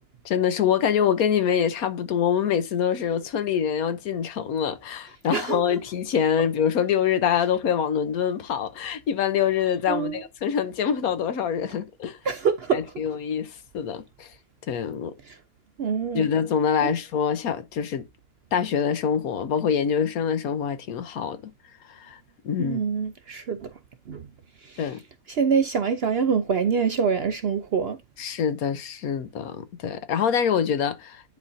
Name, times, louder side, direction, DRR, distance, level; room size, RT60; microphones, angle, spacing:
voice 1, 0.2-12.2 12.7-14.3 14.7-15.2 16.1-18.1 18.5-21.5 21.9-22.8 24.8-25.0 28.2-31.2, left 8 dB, 75° left, 1.3 m, -25 dB
voice 2, 5.3-5.6 9.9-10.2 12.2-12.8 15.3-15.4 15.8-16.3 16.8-16.9 22.6-23.7 24.1-24.3 24.6-24.8 25.3-28.0, right 6 dB, 60° right, 0.7 m, -25 dB
10.5 x 4.2 x 2.6 m
omnidirectional pair, 1.6 m